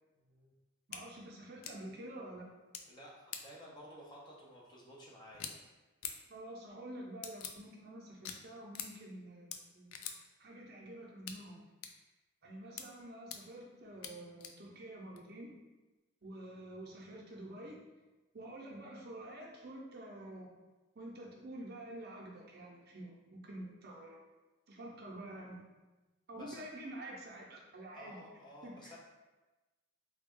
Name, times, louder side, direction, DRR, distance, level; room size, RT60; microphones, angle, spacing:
voice 1, 0.2-0.5 2.9-5.6 26.3-26.6 27.9-29.0, left 1 dB, 20° left, -4 dB, 0.6 m, -53 dB
sound 1, 0.9-1.0 1.6-1.7 2.7-2.8 3.3-3.4 5.3-5.5 6.0-6.1 7.2-7.5 8.2-8.4 8.7-8.9 9.5-9.6 9.9-10.2 11.3-11.4 11.8-11.9 12.8-12.9 13.3-13.4 14.0-14.1 14.4-14.5 15.2-15.3, left 8 dB, 80° left, 0.3 m, -42 dB
voice 2, 0.9-2.5 6.3-10.0 10.4-11.6 12.4-15.6 16.2-17.8 18.3-20.6 20.9-24.2 24.7-25.6 26.3-28.2 28.6-28.9, right 1 dB, 50° right, -2 dB, 0.6 m, -48 dB
3.3 x 2.3 x 3.6 m, 1.1 s
head